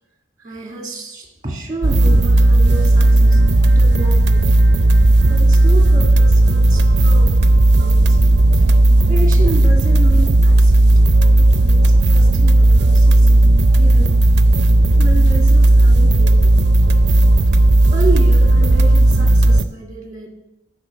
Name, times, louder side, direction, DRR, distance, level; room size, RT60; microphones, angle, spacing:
voice 1, 0.4-4.4 5.3-7.4 7.7-8.2 9.1-11.1 11.3-13.3 13.8-14.2 14.9-16.8 17.9-20.3, right 2 dB, 20° right, 2 dB, 2.0 m, -30 dB
sound 1, 1.8-19.7, right 2 dB, 60° right, 0.5 m, -12 dB
12.5 x 5.6 x 8.2 m, 0.89 s
head